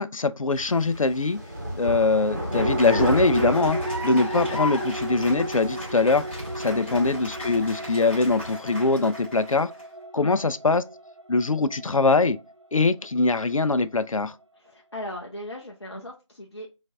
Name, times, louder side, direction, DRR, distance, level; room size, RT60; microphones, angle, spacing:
voice 1, 0.0-1.4 1.8-3.8 4.0-6.2 6.6-9.7 10.1-10.8 11.3-12.4 12.7-14.3, left 3 dB, 90° left, 0.5 m, -22 dB
sound 1, 0.5-8.5, equal, 35° right, 0.9 m, -33 dB
Cheering / Applause, 2.3-9.8, left 1 dB, 15° left, 1.5 m, -36 dB
sound 2, 2.5-14.4, right 1 dB, 65° right, 0.8 m, -35 dB
voice 2, 10.1-10.5 14.6-16.7, left 1 dB, 55° left, 0.7 m, -38 dB
4.5 x 2.5 x 2.4 m
figure-of-eight pair, 175°, 17 cm